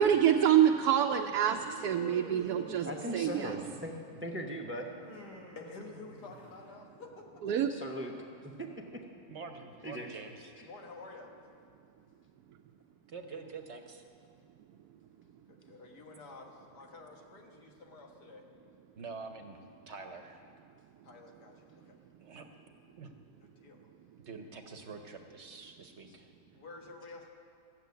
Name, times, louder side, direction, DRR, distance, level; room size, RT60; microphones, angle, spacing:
voice 1, 0.0-3.6 7.4-7.7, right 9 dB, 75° right, 3 dB, 1.1 m, -26 dB
Human voice, 1.7-4.0 4.9-6.7, left 1 dB, 30° left, 1.4 m, -49 dB
voice 2, 2.8-4.9 7.7-8.1 8.4-8.7 9.8-10.1, equal, 10° right, 2 dB, 0.6 m, -39 dB
voice 3, 5.6-7.5 10.6-11.3 15.5-18.5 21.0-22.0 23.4-23.9 26.6-27.3, left 3 dB, 80° left, 1 dB, 2.0 m, -50 dB
voice 4, 9.3-10.5 13.1-14.0 19.0-19.6 19.9-20.4 22.2-22.4 23.0-23.1 24.2-26.3, right 4 dB, 50° right, 5 dB, 1.0 m, -46 dB
13.5 x 7.5 x 9.3 m, 2.4 s
omnidirectional pair, 1.7 m